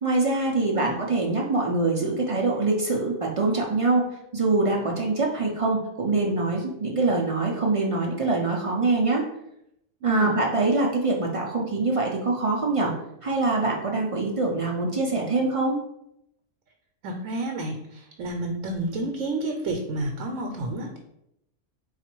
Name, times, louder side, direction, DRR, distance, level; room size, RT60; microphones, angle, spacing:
voice 1, 0.0-4.0 4.3-9.2 10.0-12.9 13.2-15.8, right 3 dB, 60° right, -1 dB, 0.3 m, -24 dB
voice 2, 0.6-0.9 10.0-10.4 17.0-21.0, right 2 dB, 85° right, 2 dB, 1.0 m, -30 dB
3.9 x 2.4 x 4.4 m, 0.79 s
omnidirectional pair, 1.3 m